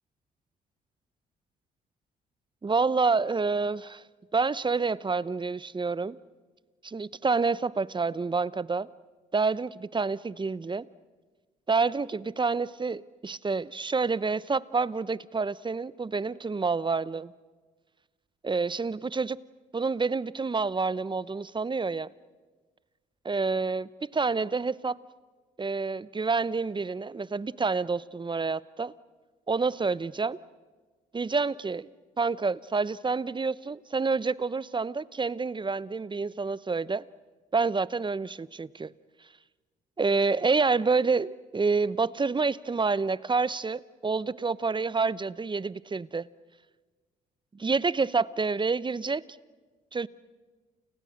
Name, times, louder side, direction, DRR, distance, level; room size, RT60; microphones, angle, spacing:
voice 1, 2.6-4.0 4.3-6.2 6.8-8.9 9.3-10.9 11.7-17.3 18.4-19.4 19.7-22.1 23.2-25.0 25.6-28.9 29.5-30.4 31.1-31.9 32.2-37.0 37.5-38.9 40.0-46.3 47.5-49.2 49.9-50.1, right 4 dB, 25° right, 19 dB, 0.8 m, -28 dB
29.5 x 29.5 x 6.6 m, 1.3 s
hypercardioid pair, 50°, 19 cm